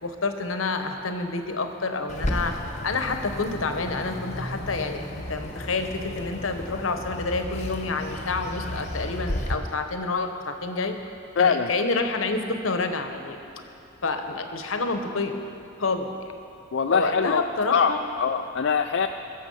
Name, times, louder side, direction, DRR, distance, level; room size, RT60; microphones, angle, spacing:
voice 1, 0.0-2.5 2.8-10.9 11.4-13.4 14.0-15.3 15.8-16.1 16.9-18.0, left 3 dB, 75° left, 6 dB, 1.1 m, -28 dB
Bird, 2.1-9.5, left 1 dB, 35° left, 1.0 m, -33 dB
voice 2, 11.4-11.7 16.7-17.4 17.7-17.9 18.2-19.1, left 6 dB, 60° left, 5 dB, 0.4 m, -22 dB
21.5 x 7.3 x 5.6 m, 2.8 s
head